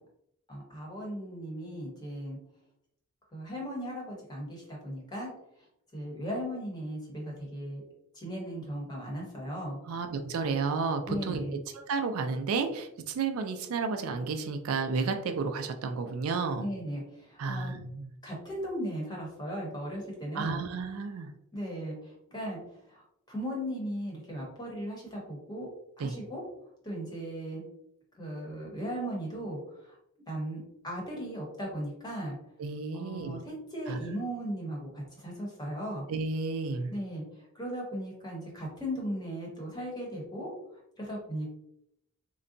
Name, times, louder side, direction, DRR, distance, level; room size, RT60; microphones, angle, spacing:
voice 1, 0.5-2.4 3.3-5.3 5.9-7.8 8.1-9.8 11.0-11.6 16.6-17.7 18.2-20.6 21.5-22.6 22.9-25.7 26.0-26.4 26.8-27.6 28.2-29.9 30.3-32.4 32.9-36.0 36.9-37.2 37.5-40.5 41.0-41.5, equal, 20° left, -2 dB, 1.0 m, -37 dB
voice 2, 9.9-11.4 11.7-16.7 17.4-18.1 20.3-21.3 26.0-26.1 32.6-33.4 33.9-34.0 36.1-36.9, right 4 dB, 75° right, 7 dB, 0.4 m, -32 dB
3.8 x 2.2 x 2.5 m, 0.77 s
head